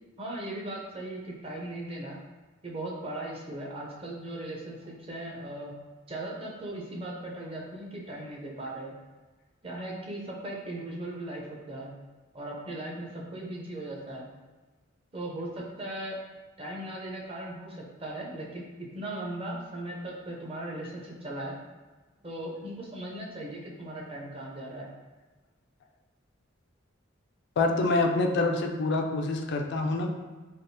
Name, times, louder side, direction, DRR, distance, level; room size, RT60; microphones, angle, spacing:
voice 1, 0.2-2.2 2.6-5.7 6.1-8.9 9.6-11.9 12.3-14.3 15.1-16.2 16.6-18.7 18.9-21.6 22.2-24.9, right 1 dB, 30° right, -2 dB, 0.6 m, -38 dB
voice 2, 27.6-30.1, left 2 dB, 60° left, 3 dB, 0.3 m, -26 dB
3.4 x 2.4 x 2.7 m, 1.3 s
head